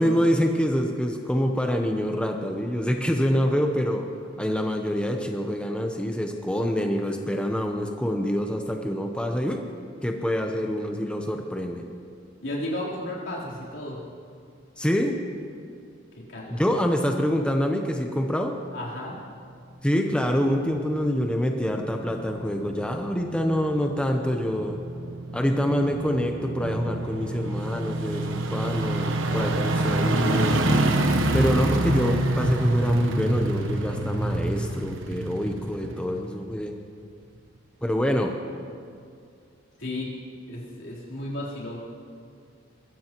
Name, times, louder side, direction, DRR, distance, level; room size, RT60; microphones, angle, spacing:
voice 1, 0.0-4.1 4.4-9.6 10.0-11.8 14.8-15.2 16.5-18.6 19.8-24.8 25.3-30.6 31.3-36.7 37.8-38.3, equal, 5° left, 3 dB, 0.8 m, -26 dB
voice 2, 12.4-14.0 16.3-16.6 18.7-19.2 39.8-40.1 40.5-41.8, left 1 dB, 75° left, -6 dB, 3.7 m, -33 dB
sound 1, 20.1-36.6 37.0-37.1, right 1 dB, 85° right, 1.1 m, -27 dB
22.0 x 15.5 x 3.0 m, 2.3 s
head